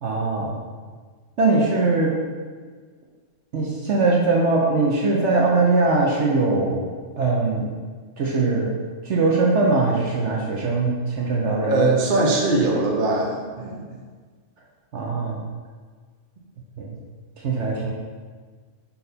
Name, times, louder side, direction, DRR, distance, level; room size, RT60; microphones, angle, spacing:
voice 1, 0.0-0.6 1.4-2.1 3.5-6.8 7.2-7.7 8.2-8.7 9.0-11.8 14.9-15.4 16.8-17.0 17.4-17.9, right 3 dB, 60° right, -2 dB, 1.0 m, -21 dB
voice 2, 11.6-13.8, right 2 dB, 40° right, -1 dB, 0.9 m, -21 dB
5.2 x 4.3 x 4.1 m, 1.5 s
omnidirectional pair, 1.5 m